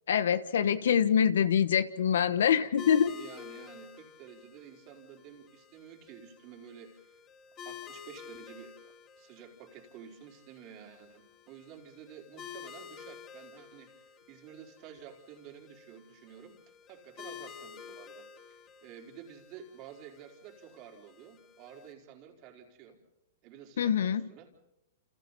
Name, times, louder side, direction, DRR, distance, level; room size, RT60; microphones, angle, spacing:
voice 1, 0.1-3.1 23.8-24.2, left 8 dB, 80° left, 14 dB, 1.2 m, -25 dB
voice 2, 2.0-7.2 7.6-23.0 23.4-24.5, right 8 dB, 40° right, 2 dB, 4.4 m, -51 dB
sound 1, 2.8-21.9, left 8 dB, 25° left, 2.4 m, -50 dB
29.5 x 28.0 x 4.2 m, 0.86 s
hypercardioid pair, 135°, 0 cm